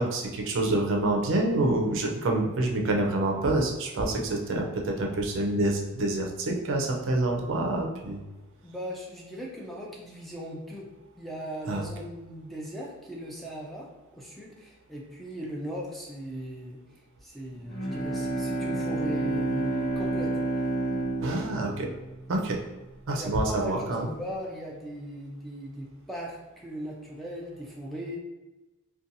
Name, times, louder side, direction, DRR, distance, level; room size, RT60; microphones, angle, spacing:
voice 1, 0.0-8.2 11.7-11.8 21.2-21.9 22.3-22.6 23.1-24.1, right 2 dB, 60° right, 1 dB, 0.5 m, -27 dB
voice 2, 8.6-10.9 11.2-13.9 14.1-16.8 17.2-20.3 23.1-28.2, equal, ahead, -3 dB, 0.3 m, -38 dB
Bowed string instrument, 17.7-22.7, right 2 dB, 70° left, 0.8 m, -30 dB
2.6 x 2.2 x 2.6 m, 1.1 s
head